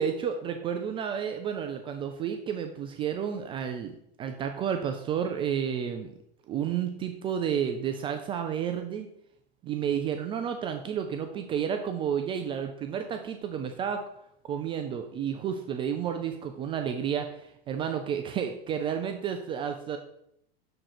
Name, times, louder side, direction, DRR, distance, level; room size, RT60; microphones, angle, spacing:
voice 1, 0.0-6.1 6.5-9.1 9.6-14.0 14.5-20.0, right 8 dB, 20° right, 6 dB, 0.3 m, -31 dB
6.5 x 3.7 x 4.4 m, 0.75 s
figure-of-eight pair, 95°, 31 cm